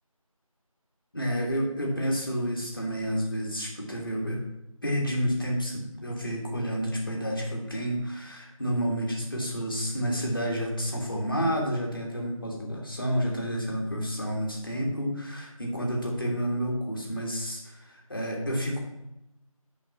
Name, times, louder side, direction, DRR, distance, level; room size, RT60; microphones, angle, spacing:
voice 1, 1.1-4.4 4.8-18.8, equal, 40° left, -1 dB, 1.9 m, -30 dB
8.7 x 5.1 x 5.5 m, 0.88 s
figure-of-eight pair, 170°, 18 cm